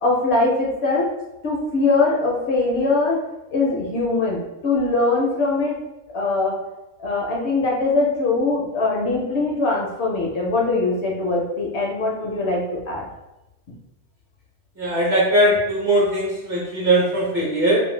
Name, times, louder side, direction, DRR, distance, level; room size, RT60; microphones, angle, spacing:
voice 1, 0.0-1.1 1.4-3.2 3.5-5.8 6.1-6.6 7.0-13.0, left 3 dB, 65° left, -2 dB, 0.8 m, -22 dB
voice 2, 14.8-17.8, right 1 dB, 45° right, -5 dB, 0.7 m, -19 dB
2.5 x 2.1 x 3.1 m, 0.97 s
omnidirectional pair, 1.3 m